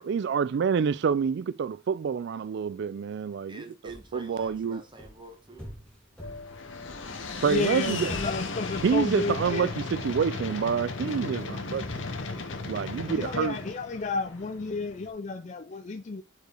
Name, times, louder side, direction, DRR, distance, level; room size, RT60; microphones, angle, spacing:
voice 1, 0.0-3.6 4.1-4.8 7.4-8.1 8.8-12.0 12.7-13.6, right 6 dB, 60° right, 0.3 m, -27 dB
voice 2, 3.4-5.7, right 2 dB, 25° right, 1.2 m, -46 dB
sound 1, 3.9-15.1, equal, 5° left, 2.0 m, -49 dB
sound 2, 6.2-15.0, left 3 dB, 65° left, 1.0 m, -36 dB
voice 3, 7.5-9.7 13.1-16.2, left 3 dB, 35° left, 0.4 m, -32 dB
5.0 x 4.7 x 4.4 m
head